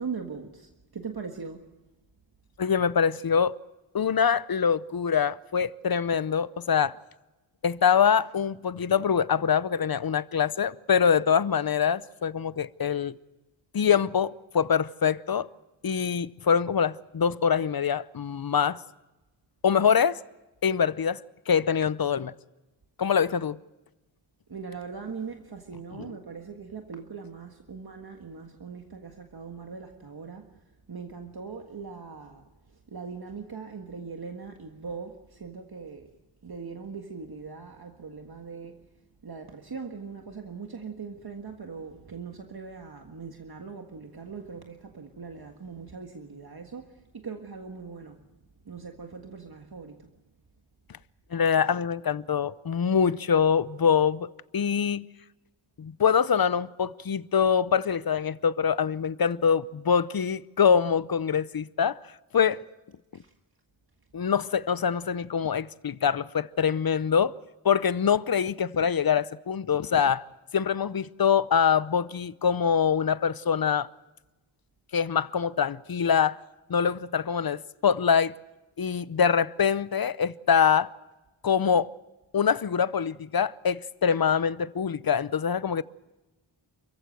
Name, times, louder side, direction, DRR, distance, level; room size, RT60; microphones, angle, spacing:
voice 1, 0.0-1.6 24.5-30.5 30.9-36.1 36.4-38.8 39.2-48.2 48.6-50.1 63.1-63.3, right 5 dB, 50° right, 1.7 m, -40 dB
voice 2, 2.6-3.5 3.9-7.0 7.6-13.2 13.7-15.5 15.8-18.8 19.6-20.2 20.6-22.3 23.0-23.6 51.3-54.3 54.5-55.0 55.8-62.0 62.3-62.6 64.1-67.3 67.6-70.2 70.5-73.9 74.9-76.4 76.7-78.3 78.8-80.9 81.4-81.9 82.3-85.8, left 7 dB, 50° left, 0.7 m, -24 dB
29.0 x 15.5 x 7.7 m
wide cardioid pair, 110°, 47 cm